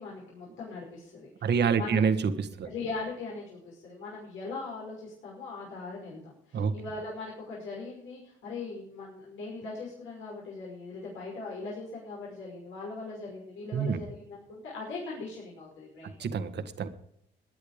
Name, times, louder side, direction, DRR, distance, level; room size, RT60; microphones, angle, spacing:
voice 1, 0.0-2.1 2.6-16.2, left 3 dB, 85° left, -4 dB, 5.7 m, -40 dB
voice 2, 1.4-2.7 6.5-6.7 13.7-14.0 16.0-16.9, right 6 dB, 60° right, 10 dB, 1.6 m, -27 dB
17.5 x 10.5 x 5.1 m, 0.74 s
cardioid pair, 90°, 20 cm